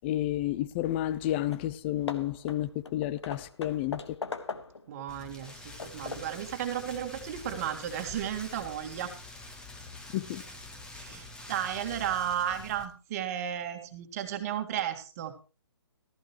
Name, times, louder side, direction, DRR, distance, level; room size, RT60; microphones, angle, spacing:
voice 1, 0.0-4.2 10.1-10.4, left 13 dB, 25° left, 0.7 m, -31 dB
Hammer / Wood, 1.5-1.7 2.1-4.9 5.4-6.4, left 4 dB, 80° left, 1.5 m, -40 dB
voice 2, 4.9-9.1 10.9-15.3, right 10 dB, 35° right, 1.9 m, -34 dB
Rain, 5.1-12.8, left 2 dB, 5° left, 1.5 m, -46 dB
14.5 x 14.5 x 3.1 m
figure-of-eight pair, 145°, 14 cm